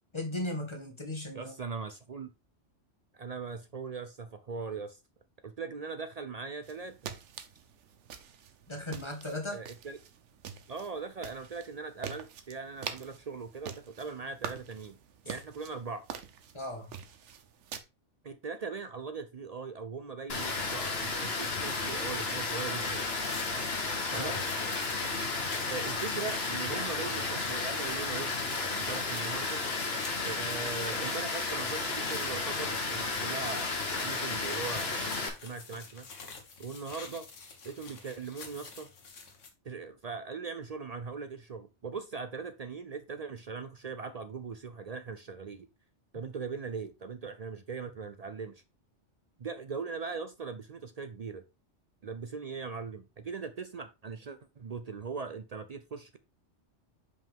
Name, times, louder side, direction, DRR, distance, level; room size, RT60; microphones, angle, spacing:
voice 1, 0.1-1.5 8.7-9.6 15.2-15.3 16.5-16.9 24.1-24.4, left 1 dB, 25° left, 1.6 m, -37 dB
voice 2, 1.3-2.3 3.1-5.0 5.4-7.1 9.5-10.0 10.7-15.0 15.3-16.1 18.2-23.1 24.1-24.4 25.6-28.3 28.6-29.6 30.2-36.1 36.6-37.3 37.6-38.9 39.6-45.7 46.1-48.6 49.4-51.4 52.0-56.2, right 5 dB, 55° right, 0.4 m, -40 dB
sound 1, 6.6-17.8, right 7 dB, 75° right, 1.1 m, -45 dB
Water, 20.3-35.3, left 3 dB, 60° left, 1.5 m, -33 dB
sound 2, 22.9-39.5, left 4 dB, 85° left, 1.6 m, -49 dB
5.5 x 5.2 x 3.5 m
omnidirectional pair, 1.2 m